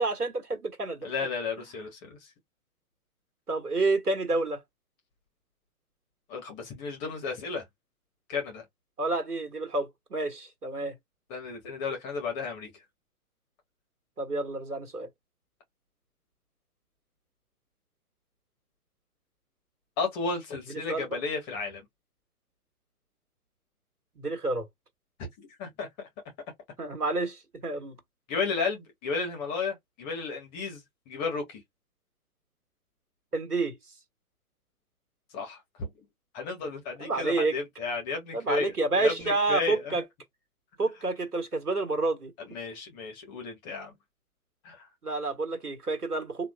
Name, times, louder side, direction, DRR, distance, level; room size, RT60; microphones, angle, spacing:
voice 1, 0.0-1.1 3.5-4.6 9.0-10.9 14.2-15.1 20.9-21.2 24.2-24.7 26.8-27.9 33.3-33.8 37.0-37.5 38.3-40.0 40.8-42.3 45.0-46.5, right 3 dB, 85° right, 1.3 m, -29 dB
voice 2, 1.0-2.2 6.3-7.6 8.3-8.6 11.3-12.7 20.0-21.8 25.6-26.1 28.3-31.6 35.3-35.9 36.3-40.0 42.4-43.9 44.6-44.9, left 4 dB, 30° left, 1.6 m, -33 dB
3.4 x 2.7 x 2.4 m
figure-of-eight pair, 120°, 45 cm